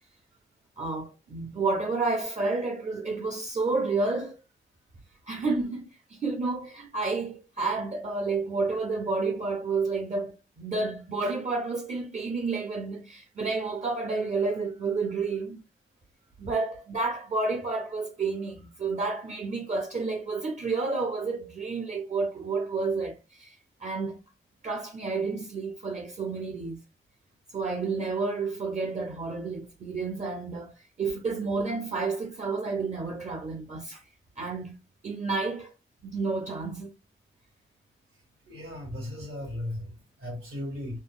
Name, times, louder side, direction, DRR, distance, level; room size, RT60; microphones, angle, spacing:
voice 1, 0.8-4.3 5.3-15.6 16.4-23.6 23.8-24.2 24.6-26.8 27.5-34.0 34.4-34.7 35.0-35.7 36.0-36.9, right 3 dB, 35° right, 0.5 m, -30 dB
voice 2, 38.5-41.0, left 1 dB, 85° right, 1.7 m, -36 dB
3.6 x 2.0 x 2.4 m
wide cardioid pair, 145°, 21 cm